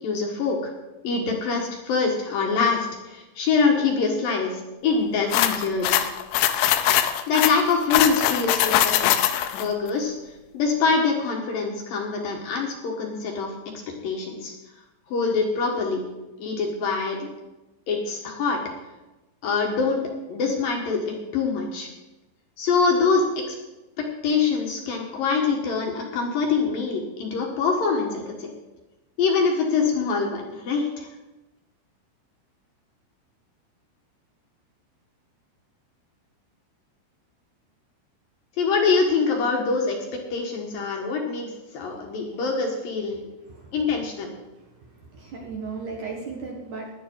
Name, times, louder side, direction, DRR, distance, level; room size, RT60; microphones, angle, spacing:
voice 1, 0.0-0.7 1.0-6.0 7.3-9.1 9.5-10.1 10.5-13.5 13.9-14.5 15.1-16.0 16.4-17.3 17.9-18.6 19.4-20.0 20.3-21.9 22.6-23.6 24.0-28.5 29.2-31.1 38.6-40.0 40.3-43.2 43.7-44.3, left 4 dB, 65° left, 1 dB, 2.4 m, -24 dB
sound 1, 5.3-9.7, left 11 dB, 80° left, 3.0 m, -21 dB
voice 2, 44.6-46.9, right 4 dB, 65° right, 0 dB, 2.0 m, -36 dB
17.0 x 11.0 x 4.7 m, 1.1 s
omnidirectional pair, 6.0 m